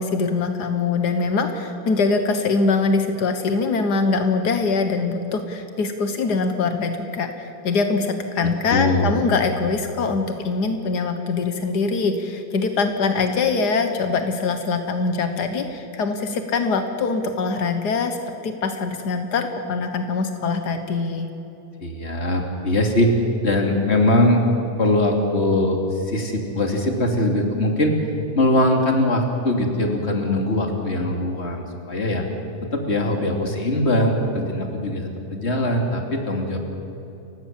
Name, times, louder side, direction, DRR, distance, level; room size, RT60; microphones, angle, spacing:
voice 1, 0.0-18.2 18.4-21.3, left 4 dB, 75° left, 7 dB, 0.9 m, -23 dB
voice 2, 8.7-9.2 21.8-23.2 23.4-24.4 24.8-28.0 28.3-32.2 32.7-36.6, left 1 dB, 20° left, 2 dB, 2.5 m, -21 dB
29.5 x 16.0 x 7.5 m, 2.9 s
omnidirectional pair, 3.7 m